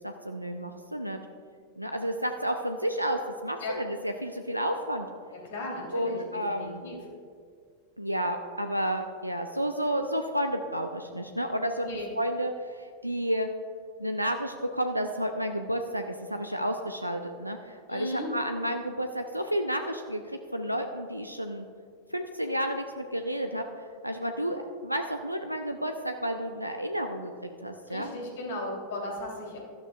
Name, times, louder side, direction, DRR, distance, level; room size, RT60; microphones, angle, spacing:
voice 1, 0.0-1.2 1.8-5.1 5.9-6.8 8.0-13.5 14.0-20.2 20.5-21.6 22.1-23.6 24.0-28.1, equal, 90° right, 6 dB, 0.5 m, -31 dB
voice 2, 5.3-7.0 11.8-12.1 17.9-18.3 27.9-29.6, left 1 dB, 55° left, -1 dB, 3.2 m, -36 dB
16.5 x 12.5 x 2.4 m, 2.1 s
figure-of-eight pair, 90°, 0 cm